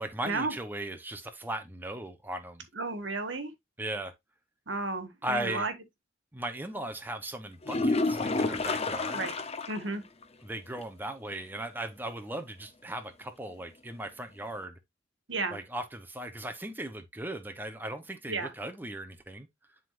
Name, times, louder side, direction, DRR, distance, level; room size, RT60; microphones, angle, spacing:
voice 1, 0.0-2.7 3.8-4.1 5.2-5.7 6.3-9.2 10.4-14.8 15.5-19.5, right 1 dB, 10° right, 0.8 m, -37 dB
voice 2, 2.7-3.5 4.7-5.7 9.1-9.3 9.7-10.0 15.3-15.6 18.3-18.5, right 3 dB, 85° right, 1.5 m, -32 dB
sound 1, 7.6-9.9 10.2-10.3 10.8-10.9 14.6-14.7, left 3 dB, 35° left, 0.8 m, -29 dB
10.5 x 3.8 x 2.5 m
head